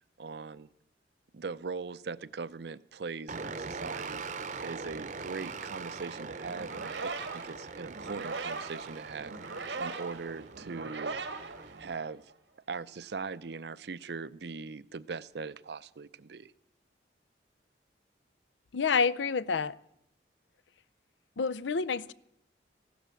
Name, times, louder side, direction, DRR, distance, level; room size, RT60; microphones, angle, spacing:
voice 1, 0.2-0.7 1.3-4.2 4.6-9.3 9.8-11.3 11.8-12.2 12.7-16.5, right 4 dB, 70° right, 0.6 m, -40 dB
sound 1, 3.3-12.0, right 4 dB, 45° right, 0.8 m, -42 dB
sound 2, 6.5-12.3, right 4 dB, 85° right, 1.6 m, -40 dB
voice 2, 18.7-19.8 21.4-22.1, left 5 dB, 90° left, 0.5 m, -28 dB
15.5 x 12.0 x 7.6 m
head